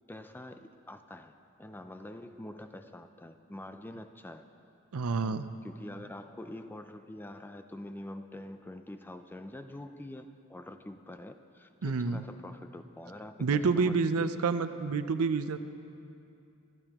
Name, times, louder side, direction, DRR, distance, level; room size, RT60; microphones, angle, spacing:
voice 1, 0.1-1.3 1.6-4.4 5.2-14.5, left 1 dB, 10° left, 8 dB, 0.4 m, -45 dB
voice 2, 4.9-5.5 11.8-12.2 13.4-15.6, right 4 dB, 75° right, 11 dB, 0.5 m, -28 dB
26.0 x 10.5 x 2.9 m, 2.7 s
head